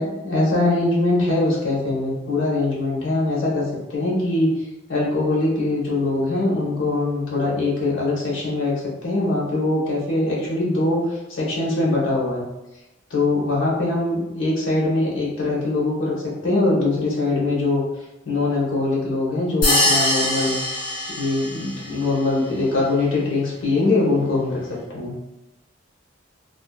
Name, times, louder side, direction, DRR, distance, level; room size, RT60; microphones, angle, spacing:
voice 1, 0.0-4.5 4.9-12.4 13.1-17.8 18.2-20.6 21.2-24.6 24.9-25.1, left 2 dB, 70° left, -5 dB, 0.8 m, -22 dB
sound 1, 19.6-21.9, left 1 dB, 45° left, 1.0 m, -22 dB
2.6 x 2.2 x 2.2 m, 0.94 s
head